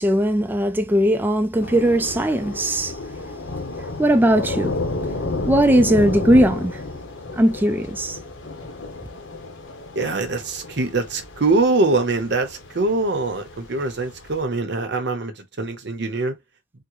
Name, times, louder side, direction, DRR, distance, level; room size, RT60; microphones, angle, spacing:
voice 1, 0.0-3.0 4.0-4.8 5.4-6.8 7.3-8.2, right 1 dB, 10° right, 0.3 m, -19 dB
Thunder / Rain, 1.6-14.4, left 2 dB, 85° left, 0.9 m, -32 dB
voice 2, 9.9-16.3, right 3 dB, 65° right, 0.8 m, -23 dB
3.7 x 2.1 x 3.0 m
head